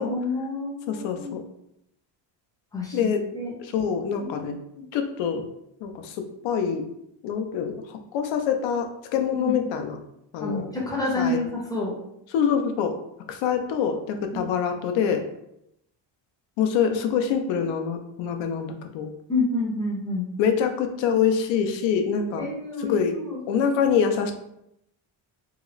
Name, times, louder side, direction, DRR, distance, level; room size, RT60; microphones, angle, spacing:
voice 1, 0.0-1.3 2.7-3.5 4.2-4.8 9.3-9.7 10.4-11.9 14.3-14.5 19.3-20.3 22.4-23.4, left 2 dB, 10° left, -3 dB, 0.5 m, -29 dB
voice 2, 0.9-1.4 2.9-3.2 3.6-4.6 4.9-5.4 5.8-6.2 6.4-6.8 7.2-7.8 8.1-10.0 10.3-10.7 11.2-11.4 12.3-13.0 13.3-15.2 16.6-19.1 20.4-22.5 22.8-23.1 23.5-24.3, left 7 dB, 80° left, 6 dB, 0.6 m, -25 dB
2.9 x 2.4 x 3.0 m, 0.80 s
cardioid pair, 155°, 46 cm